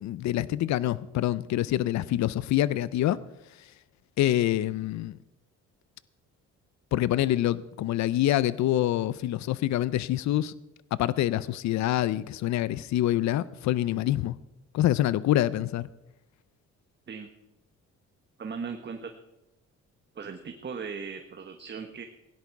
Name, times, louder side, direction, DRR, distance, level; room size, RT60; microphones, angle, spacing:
voice 1, 0.0-3.2 4.2-5.2 6.9-10.5 10.9-14.4 14.7-15.9, left 13 dB, 65° left, 0.6 m, -26 dB
voice 2, 18.4-19.1 20.1-22.0, right 5 dB, 35° right, 1.2 m, -38 dB
17.5 x 10.5 x 4.7 m
cardioid pair, 90°, 30 cm